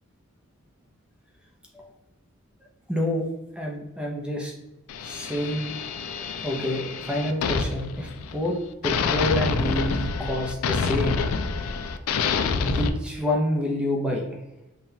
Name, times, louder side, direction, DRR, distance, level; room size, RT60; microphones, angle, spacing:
voice 1, 2.9-3.3 3.6-4.5 5.0-5.7 6.4-8.5 8.8-11.2 12.6-14.4, left 1 dB, 5° right, -1 dB, 0.5 m, -28 dB
sound 1, 4.9-8.5 8.8-12.9, left 5 dB, 80° left, 0.3 m, -27 dB
5.4 x 2.3 x 2.8 m, 0.95 s
head